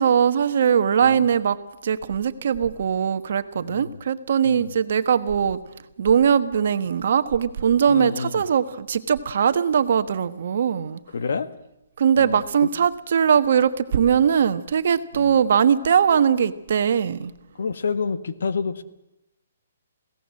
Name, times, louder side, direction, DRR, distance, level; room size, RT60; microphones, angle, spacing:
voice 1, 0.0-5.6 6.0-11.0 12.0-17.3, right 7 dB, 55° right, 12 dB, 1.3 m, -20 dB
voice 2, 3.6-4.0 4.4-4.8 7.9-8.4 11.1-11.5 12.2-12.7 15.1-15.4 17.5-18.8, left 5 dB, 70° left, 12 dB, 1.5 m, -29 dB
22.0 x 17.0 x 7.7 m, 0.86 s
hypercardioid pair, 165°, 0 cm